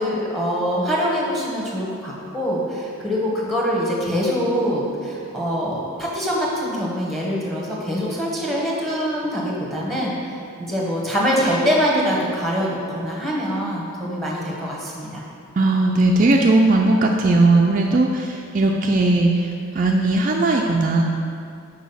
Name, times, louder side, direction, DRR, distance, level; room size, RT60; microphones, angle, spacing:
voice 1, 0.0-15.2, equal, ahead, -4 dB, 1.1 m, -24 dB
voice 2, 15.6-21.0, right 2 dB, 35° right, 0 dB, 0.3 m, -18 dB
6.2 x 4.7 x 5.5 m, 2.5 s
head